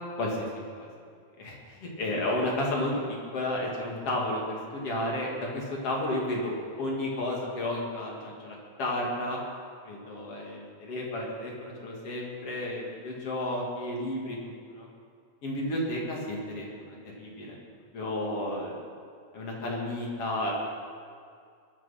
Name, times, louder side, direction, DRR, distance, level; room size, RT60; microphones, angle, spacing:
voice 1, 1.4-9.4 9.8-14.9 15.4-17.6 17.9-18.8 19.3-20.5, left 1 dB, 55° left, -2 dB, 3.3 m, -32 dB
21.5 x 9.4 x 5.8 m, 2.2 s
omnidirectional pair, 3.4 m